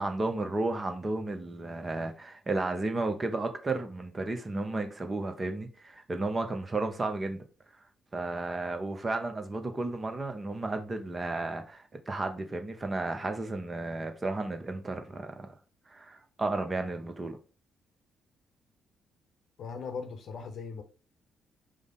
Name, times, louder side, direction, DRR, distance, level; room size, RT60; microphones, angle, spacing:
voice 1, 0.0-7.4 8.1-15.5 15.9-17.4, right 2 dB, 30° right, 0.7 m, -33 dB
voice 2, 19.6-20.8, left 5 dB, 55° left, 0.7 m, -39 dB
5.0 x 2.0 x 3.8 m
figure-of-eight pair, 40°, 0 cm